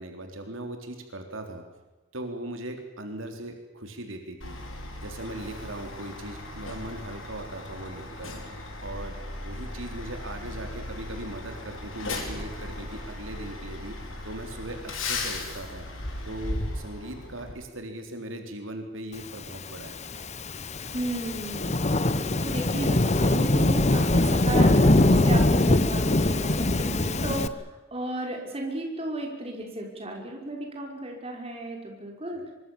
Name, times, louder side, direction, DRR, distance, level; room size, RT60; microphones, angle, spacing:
voice 1, 0.0-1.6 2.1-4.6 5.0-8.3 8.8-15.9 16.2-20.0, right 1 dB, 85° right, 4 dB, 3.7 m, -39 dB
Truck, 4.4-17.5, left 2 dB, 85° left, 5.3 m, -37 dB
Thunderstorm / Rain, 19.8-27.5, left 1 dB, 35° left, 1.0 m, -22 dB
voice 2, 20.9-21.7 22.4-32.4, right 1 dB, 30° right, 1 dB, 5.7 m, -34 dB
25.0 x 24.0 x 7.3 m, 1.2 s
head